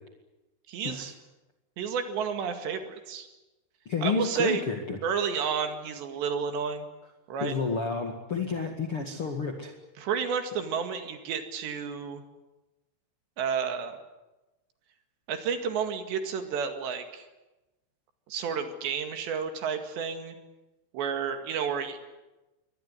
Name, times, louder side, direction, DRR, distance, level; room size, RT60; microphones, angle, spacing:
voice 1, 0.7-1.1 1.8-3.3 4.0-4.6 5.0-6.9 7.3-7.5 10.0-12.2 13.4-14.0 15.3-17.3 18.3-20.4 20.9-22.0, right 6 dB, 65° right, 7 dB, 4.0 m, -31 dB
voice 2, 3.8-5.0 7.4-9.7, left 5 dB, 50° left, 3 dB, 1.7 m, -30 dB
24.0 x 19.0 x 9.9 m, 1.1 s
omnidirectional pair, 5.7 m